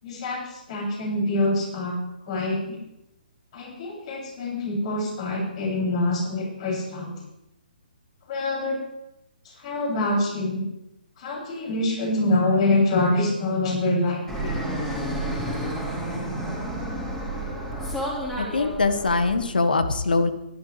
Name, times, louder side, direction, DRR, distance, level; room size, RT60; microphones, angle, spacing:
voice 1, 0.0-2.0 2.3-2.8 3.5-7.2 8.3-8.8 9.4-10.6 11.2-14.6, left 2 dB, 40° left, -3 dB, 7.3 m, -25 dB
Fixed-wing aircraft airplane, 14.3-19.4, right 1 dB, 10° left, 4.0 m, -30 dB
voice 2, 18.4-20.3, left 3 dB, 70° left, 10 dB, 1.6 m, -22 dB
23.5 x 11.5 x 3.4 m, 0.88 s
figure-of-eight pair, 135°, 5 cm